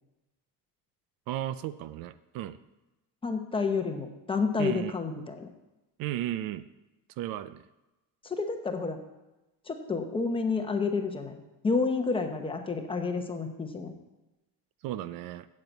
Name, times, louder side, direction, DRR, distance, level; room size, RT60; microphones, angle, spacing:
voice 1, 1.3-2.6 4.6-4.9 6.0-6.7 7.2-7.6 14.8-15.5, right 13 dB, 65° right, 14 dB, 0.6 m, -34 dB
voice 2, 3.2-5.5 8.2-9.0 9.7-13.9, left 4 dB, 15° left, 5 dB, 0.8 m, -30 dB
9.3 x 7.6 x 8.0 m, 1.0 s
cardioid pair, 180°, 37 cm